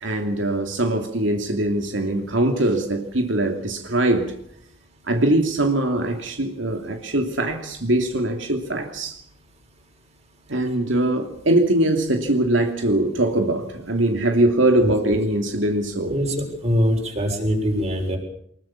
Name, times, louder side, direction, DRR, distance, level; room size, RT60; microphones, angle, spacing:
voice 1, 0.0-4.3 5.1-9.2 10.5-16.2, right 1 dB, 85° right, 2.8 m, -22 dB
voice 2, 16.1-18.2, equal, 35° right, 6.6 m, -23 dB
24.5 x 21.5 x 7.3 m
head